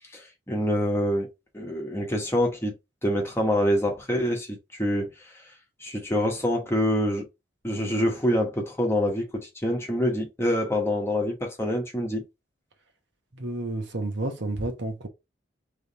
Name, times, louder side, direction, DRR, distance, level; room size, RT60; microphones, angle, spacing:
voice 1, 0.1-1.3 1.5-2.7 3.0-5.4 5.8-7.3 7.6-12.2, equal, 15° left, 1.2 m, -26 dB
voice 2, 13.3-15.1, right 2 dB, 70° right, 1.1 m, -31 dB
3.5 x 3.2 x 4.1 m
head